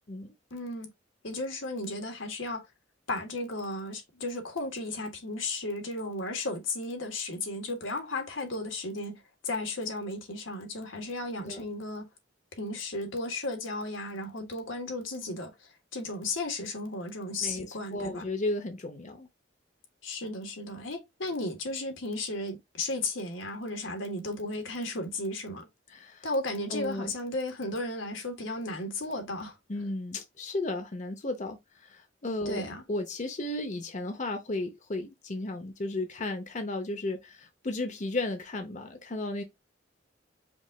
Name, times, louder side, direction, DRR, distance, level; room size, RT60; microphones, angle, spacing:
voice 1, 0.5-0.9 1.2-2.6 3.1-12.1 12.5-18.2 20.0-25.7 26.2-29.6 32.4-32.8, left 2 dB, 90° left, 1.5 m, -34 dB
voice 2, 17.4-19.3 25.9-26.3 26.7-27.1 29.7-39.4, left 2 dB, 40° left, 0.8 m, -34 dB
5.3 x 2.5 x 3.6 m
head